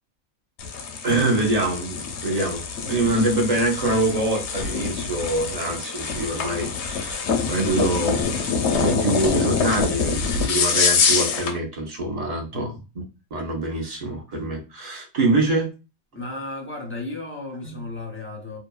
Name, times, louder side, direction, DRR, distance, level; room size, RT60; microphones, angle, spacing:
sound 1, 0.6-11.6, left 5 dB, 65° left, 0.8 m, -25 dB
voice 1, 1.0-12.7 13.3-15.7, right 2 dB, 35° right, 0.8 m, -25 dB
voice 2, 16.1-18.6, left 2 dB, 15° left, 0.4 m, -34 dB
2.8 x 2.5 x 2.3 m
omnidirectional pair, 1.4 m